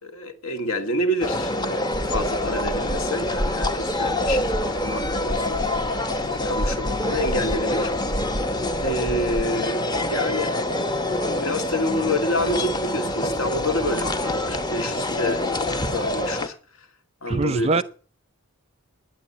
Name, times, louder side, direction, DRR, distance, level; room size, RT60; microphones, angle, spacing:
voice 1, 0.0-5.6 6.3-7.9 8.8-10.6 11.4-16.9 17.2-17.8, left 1 dB, 75° left, 2.0 m, -28 dB
sound 1, 1.2-16.5, left 1 dB, 20° left, 0.9 m, -26 dB
sound 2, 1.9-9.4, equal, 5° right, 1.1 m, -32 dB
voice 2, 17.3-17.8, right 3 dB, 30° right, 0.5 m, -22 dB
11.0 x 8.6 x 8.4 m
head